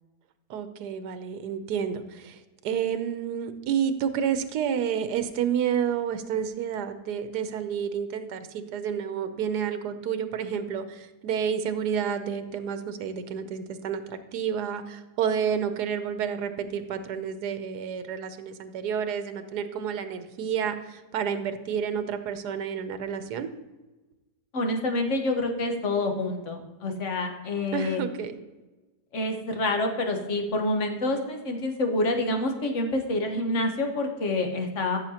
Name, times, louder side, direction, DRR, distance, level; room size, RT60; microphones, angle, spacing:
voice 1, 0.5-23.5 27.7-28.4, right 8 dB, 80° right, 10 dB, 1.3 m, -30 dB
voice 2, 24.5-28.0 29.1-35.0, left 2 dB, 50° left, 4 dB, 1.3 m, -27 dB
13.5 x 6.4 x 2.8 m, 1.1 s
omnidirectional pair, 1.7 m